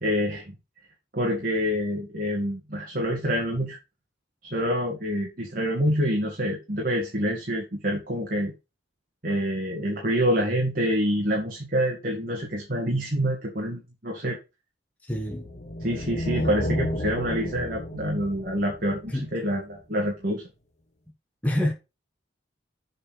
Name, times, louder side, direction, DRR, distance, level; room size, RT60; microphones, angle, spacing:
voice 1, 0.0-0.5 1.1-3.8 4.4-8.5 9.2-14.4 15.8-20.4, equal, 45° right, 1.9 m, -27 dB
voice 2, 15.0-15.5 19.1-19.3 21.4-21.7, left 1 dB, 10° left, 1.2 m, -26 dB
sound 1, 15.1-19.5, left 1 dB, 35° left, 1.1 m, -32 dB
7.4 x 4.4 x 6.3 m
head